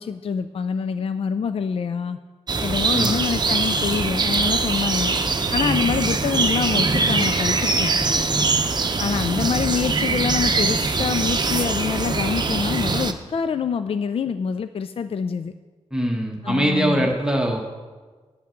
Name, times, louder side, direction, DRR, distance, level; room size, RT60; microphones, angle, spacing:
voice 1, 0.0-2.2 2.6-5.2 5.5-7.9 9.0-15.5 16.4-17.1, left 6 dB, 55° left, 11 dB, 0.4 m, -26 dB
sound 1, 2.5-13.1, right 3 dB, 40° right, 0.7 m, -22 dB
voice 2, 15.9-17.6, right 1 dB, 5° right, -1 dB, 1.2 m, -22 dB
9.3 x 5.8 x 7.6 m, 1.4 s
cardioid pair, 70°, 12 cm